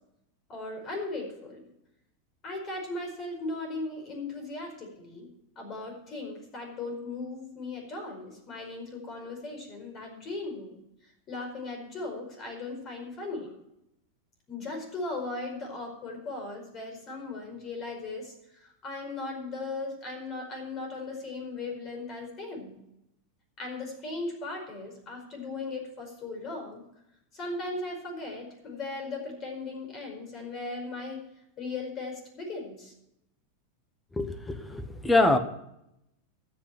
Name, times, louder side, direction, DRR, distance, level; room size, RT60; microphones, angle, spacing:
voice 1, 0.5-1.6 2.4-5.3 5.5-10.7 11.3-13.5 14.5-22.7 23.6-26.8 27.3-31.2 31.6-32.9, left 3 dB, 30° left, 3 dB, 4.9 m, -37 dB
voice 2, 34.1-35.4, left 2 dB, 10° left, 10 dB, 1.1 m, -24 dB
12.5 x 9.1 x 5.9 m, 0.82 s
supercardioid pair, 155°, 0 cm